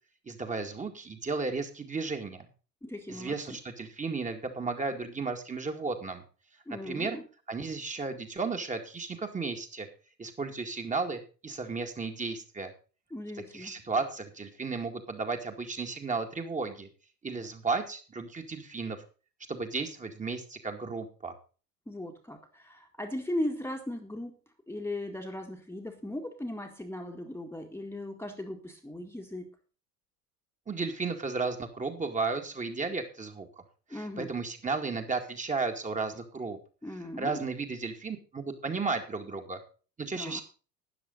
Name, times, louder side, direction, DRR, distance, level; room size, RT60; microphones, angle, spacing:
voice 1, 0.3-2.5 3.1-6.2 6.8-7.2 7.5-9.9 10.2-12.7 13.5-16.9 17.2-19.0 19.5-21.3 30.7-33.5 33.9-36.6 37.2-39.6 40.0-40.4, right 4 dB, 15° right, 5 dB, 2.1 m, -34 dB
voice 2, 2.8-3.4 6.7-7.2 13.1-13.7 21.9-24.4 24.7-29.5 33.9-34.3 36.8-37.4 40.2-40.4, left 1 dB, 5° left, 3 dB, 1.9 m, -37 dB
13.0 x 10.0 x 4.0 m, 0.36 s
figure-of-eight pair, 80°, 48 cm